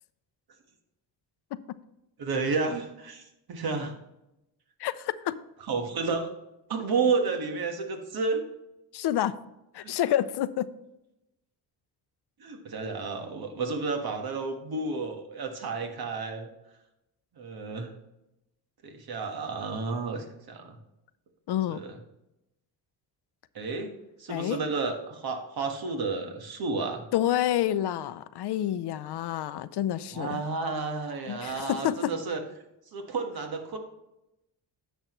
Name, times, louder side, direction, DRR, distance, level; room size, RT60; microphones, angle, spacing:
voice 1, 2.2-3.2 3.5-3.9 5.7-6.3 6.7-8.4 9.8-9.9 12.4-16.5 17.4-17.9 18.8-20.8 21.7-22.0 23.5-23.9 24.2-27.0 30.1-32.4 32.9-33.8, right 4 dB, 55° right, 4 dB, 1.6 m, -31 dB
voice 2, 4.8-5.4 8.9-9.4 9.7-10.7 21.5-21.8 24.3-24.6 27.1-30.4 31.3-32.1, left 12 dB, 65° left, 15 dB, 0.6 m, -28 dB
10.0 x 7.3 x 3.1 m, 0.90 s
cardioid pair, 105°, 42 cm